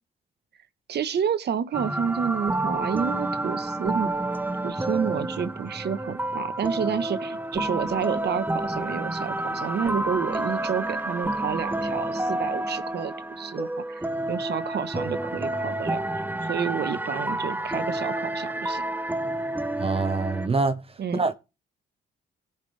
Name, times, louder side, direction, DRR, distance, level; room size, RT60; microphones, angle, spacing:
voice 1, 0.9-4.1 4.6-18.9 21.0-21.2, right 7 dB, 55° right, 1.3 m, -30 dB
sound 1, 1.7-20.5, right 1 dB, 10° right, 0.7 m, -29 dB
voice 2, 19.8-20.8 21.1-21.3, right 3 dB, 30° right, 1.1 m, -25 dB
18.0 x 6.1 x 3.4 m
cardioid pair, 90°, 20 cm